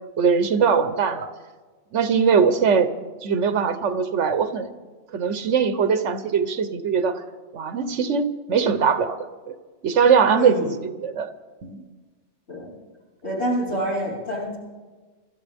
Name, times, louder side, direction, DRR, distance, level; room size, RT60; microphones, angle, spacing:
voice 1, 0.2-1.3 1.9-2.9 3.2-4.7 5.1-7.2 7.5-9.2 9.5-9.6 9.8-10.6 10.8-11.3 11.6-11.8, right 6 dB, 75° right, 11 dB, 1.2 m, -21 dB
voice 2, 10.3-10.7 12.5-12.7 13.2-14.6, equal, 65° left, -6 dB, 5.0 m, -27 dB
26.0 x 12.5 x 3.5 m, 1.3 s
omnidirectional pair, 1.2 m